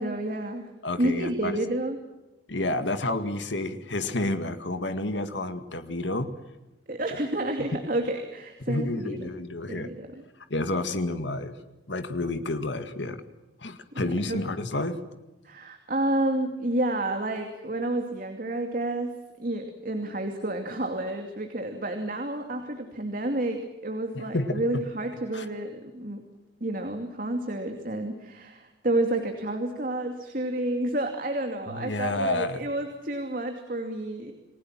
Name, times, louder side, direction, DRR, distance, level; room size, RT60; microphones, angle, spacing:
voice 1, 0.0-0.7 1.0-2.0 6.9-9.2 9.7-10.1 14.0-14.4 15.4-19.1 19.4-26.2 26.6-34.3, right 1 dB, 50° right, 4 dB, 2.7 m, -30 dB
voice 2, 0.8-1.5 2.5-6.3 8.6-9.9 10.5-11.5 11.9-13.2 13.6-15.0 24.1-24.5 25.3-25.5 31.7-32.6, left 2 dB, 80° left, 9 dB, 2.0 m, -30 dB
29.0 x 20.5 x 7.5 m, 1.1 s
head